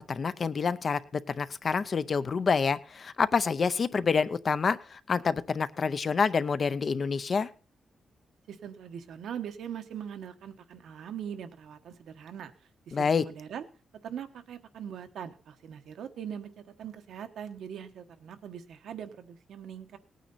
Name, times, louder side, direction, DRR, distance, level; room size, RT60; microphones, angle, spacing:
voice 1, 0.1-7.5 12.9-13.2, left 5 dB, 35° left, 14 dB, 0.5 m, -27 dB
voice 2, 8.5-12.5 12.9-13.6 14.0-16.5 16.8-20.0, right 8 dB, 80° right, 8 dB, 1.1 m, -41 dB
18.5 x 9.2 x 4.1 m, 0.36 s
wide cardioid pair, 180°, 0 cm